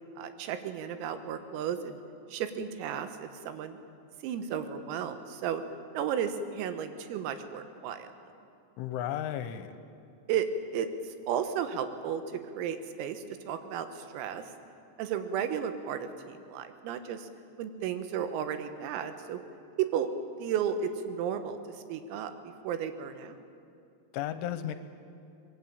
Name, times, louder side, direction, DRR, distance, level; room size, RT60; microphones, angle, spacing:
voice 1, 0.2-2.0 2.3-3.8 4.2-5.6 6.0-8.1 10.3-10.5 10.7-10.9 11.3-12.2 12.5-14.4 15.0-17.3 17.6-19.4 19.8-20.1 20.4-21.6 21.9-22.3 22.6-23.4, right 8 dB, 90° right, 9 dB, 4.1 m, -33 dB
voice 2, 8.8-9.7 24.1-24.7, left 11 dB, 80° left, 11 dB, 3.1 m, -34 dB
24.0 x 21.0 x 8.8 m, 2.5 s
omnidirectional pair, 5.9 m